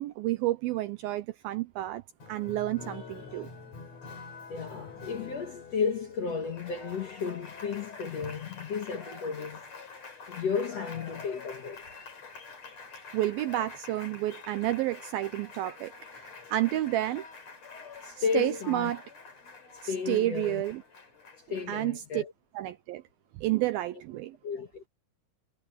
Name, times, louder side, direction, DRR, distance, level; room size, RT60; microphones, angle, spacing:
voice 1, 0.0-2.0 2.3-3.5 13.1-17.2 18.3-19.0 19.8-20.8 21.7-22.2 22.5-23.0 23.4-24.4, right 15 dB, 85° right, 2.2 m, -30 dB
Applause, 2.2-21.9, left 4 dB, 40° left, 5.4 m, -46 dB
voice 2, 4.5-9.6 10.3-11.8 18.0-18.9 19.8-20.6 21.5-22.3 24.4-24.8, left 5 dB, 60° left, 1.8 m, -33 dB
omnidirectional pair, 4.9 m